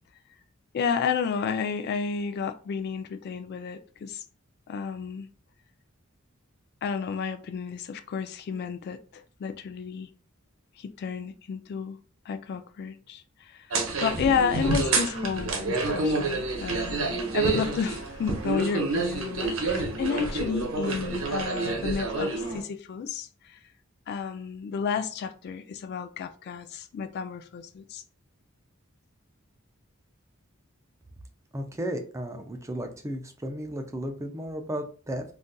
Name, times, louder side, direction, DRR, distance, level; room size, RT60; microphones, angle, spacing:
voice 1, 0.7-4.2 4.7-5.3 6.8-10.1 10.8-12.0 12.3-13.7 14.0-23.6 24.1-28.0, left 6 dB, 55° left, 0.3 m, -31 dB
sound 1, 13.7-22.6, right 3 dB, 80° right, 0.8 m, -28 dB
voice 2, 31.5-35.2, right 1 dB, 15° right, 0.4 m, -34 dB
3.8 x 2.5 x 2.2 m
head